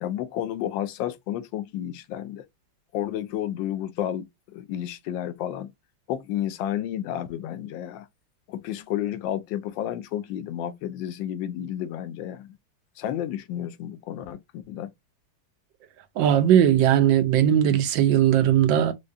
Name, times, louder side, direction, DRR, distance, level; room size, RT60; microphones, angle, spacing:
voice 1, 0.0-2.4 2.9-5.7 6.1-8.1 8.5-12.6 13.0-14.9, left 11 dB, 80° left, 1.3 m, -31 dB
voice 2, 16.2-18.9, right 10 dB, 80° right, 1.4 m, -19 dB
4.8 x 2.2 x 2.5 m
omnidirectional pair, 2.0 m